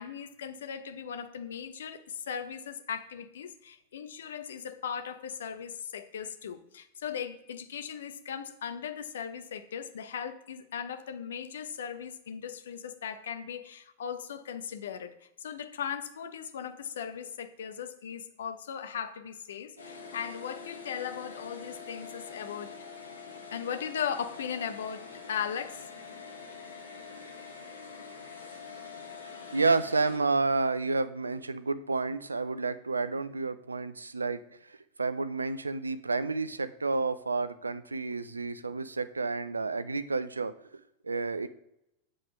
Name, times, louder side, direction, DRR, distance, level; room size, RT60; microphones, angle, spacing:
voice 1, 0.0-22.7 23.5-25.9, left 8 dB, 65° left, 9 dB, 0.7 m, -38 dB
sound 1, 19.8-30.2, left 5 dB, 80° left, 1.5 m, -45 dB
voice 2, 29.5-41.5, right 3 dB, 80° right, 14 dB, 0.4 m, -30 dB
7.8 x 3.8 x 5.8 m, 0.81 s
figure-of-eight pair, 90°, 0 cm